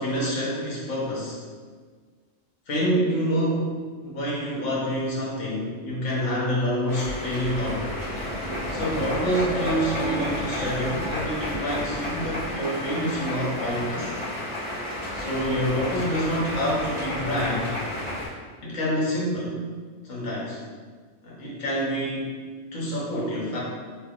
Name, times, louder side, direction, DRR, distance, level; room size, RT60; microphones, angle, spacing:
voice 1, 0.0-1.4 2.7-7.9 8.7-14.1 15.1-17.7 18.6-19.6 20.0-20.6 21.2-22.3 22.7-23.6, equal, 75° left, -5 dB, 1.2 m, -27 dB
sound 1, 6.9-18.3, left 1 dB, 30° right, 1.2 m, -31 dB
3.2 x 3.1 x 2.3 m, 1.5 s
omnidirectional pair, 1.3 m